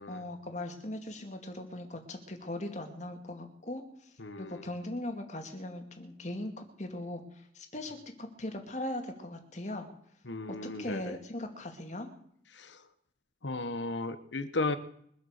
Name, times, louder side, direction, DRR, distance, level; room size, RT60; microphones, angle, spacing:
voice 1, 0.1-9.9 10.5-12.1, left 1 dB, 40° left, 5 dB, 2.4 m, -39 dB
voice 2, 4.2-4.6 10.3-11.1 12.5-12.8 13.4-14.8, left 2 dB, 85° left, 12 dB, 1.2 m, -35 dB
23.0 x 8.4 x 6.7 m, 0.68 s
head